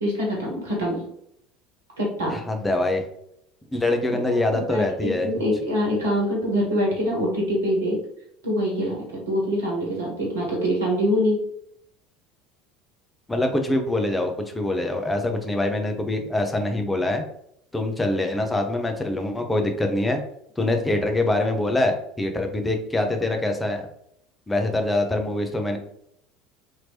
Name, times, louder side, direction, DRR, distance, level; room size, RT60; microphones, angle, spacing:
voice 1, 0.0-1.0 2.0-2.4 4.3-8.0 8.4-11.4, equal, 70° right, -2 dB, 1.2 m, -24 dB
voice 2, 2.3-3.0 3.7-5.3 13.3-17.2 17.7-20.2 20.6-23.9 24.5-25.8, left 2 dB, 10° left, 4 dB, 0.6 m, -24 dB
2.9 x 2.8 x 2.9 m, 0.74 s
figure-of-eight pair, 70°, 0 cm